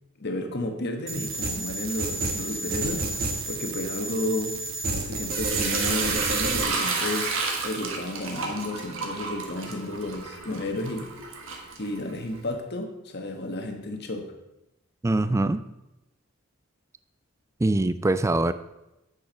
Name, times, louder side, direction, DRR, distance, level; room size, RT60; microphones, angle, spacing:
voice 1, 0.2-3.0 3.5-4.5 4.9-7.3 7.6-11.1 11.8-14.3, left 1 dB, 50° left, 5 dB, 1.2 m, -32 dB
sound 1, 1.1-6.6, right 3 dB, 45° right, 1.1 m, -30 dB
Sink (filling or washing) / Liquid, 5.4-12.4, right 4 dB, 65° right, 1.4 m, -31 dB
voice 2, 15.0-15.6 17.6-18.5, right 2 dB, 15° right, 13 dB, 0.3 m, -23 dB
8.8 x 6.3 x 5.2 m, 0.95 s
head